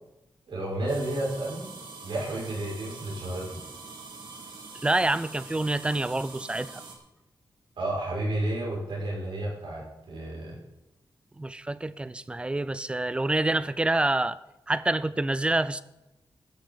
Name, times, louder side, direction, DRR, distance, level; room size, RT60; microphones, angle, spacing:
voice 1, 0.5-1.7 2.0-3.6 7.8-10.6, right 1 dB, 90° right, 6.2 m, -31 dB
sound 1, 0.9-6.9, right 4 dB, 75° right, 2.4 m, -44 dB
voice 2, 4.8-6.8 11.4-14.4 14.7-15.8, right 2 dB, 15° right, 0.4 m, -27 dB
14.5 x 13.0 x 4.0 m
wide cardioid pair, 175°, 8 cm